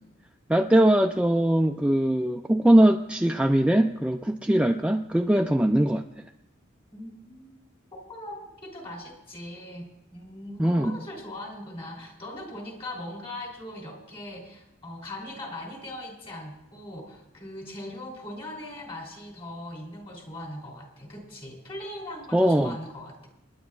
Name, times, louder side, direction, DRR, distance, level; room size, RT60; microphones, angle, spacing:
voice 1, 0.5-6.0 10.6-11.0 22.3-22.8, right 1 dB, 5° right, 4 dB, 0.4 m, -21 dB
voice 2, 6.9-7.6 7.9-23.3, left 1 dB, 30° left, 0 dB, 3.0 m, -40 dB
28.0 x 10.5 x 2.3 m, 0.87 s
head